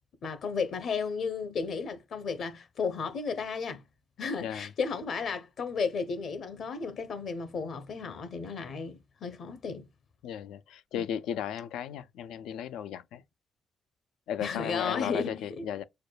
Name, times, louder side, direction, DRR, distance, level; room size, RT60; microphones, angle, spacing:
voice 1, 0.2-3.8 4.2-9.9 10.9-11.1 14.4-15.6, left 5 dB, 60° left, 0.8 m, -34 dB
voice 2, 10.2-13.2 14.3-15.8, left 9 dB, 85° left, 0.3 m, -35 dB
6.4 x 2.2 x 2.3 m
cardioid pair, 90°, 0 cm